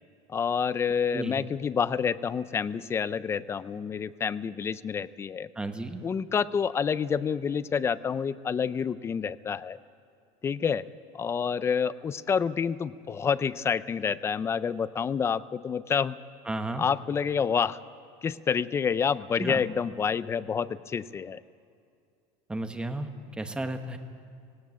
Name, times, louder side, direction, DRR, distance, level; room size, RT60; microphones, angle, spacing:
voice 1, 0.3-5.5 6.0-9.8 10.4-10.8 11.1-16.2 16.8-17.8 18.2-21.4, left 6 dB, 20° left, 17 dB, 0.4 m, -28 dB
voice 2, 1.1-1.4 5.6-6.0 16.5-16.9 19.4-19.6 22.5-24.0, right 2 dB, 5° right, 7 dB, 1.1 m, -33 dB
17.5 x 17.0 x 9.3 m, 2.4 s
cardioid pair, 155°, 14 cm